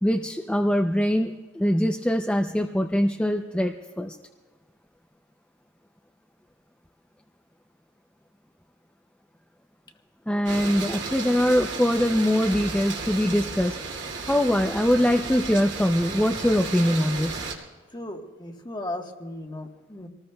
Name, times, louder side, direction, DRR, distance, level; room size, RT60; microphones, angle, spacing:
voice 1, 0.0-4.2 10.3-13.8 14.3-17.4, equal, 5° left, 4 dB, 0.5 m, -23 dB
sound 1, 10.5-17.5, right 4 dB, 65° right, 2.5 m, -34 dB
voice 2, 17.9-20.1, left 1 dB, 20° left, 4 dB, 1.3 m, -36 dB
25.5 x 19.0 x 2.3 m, 1.3 s
head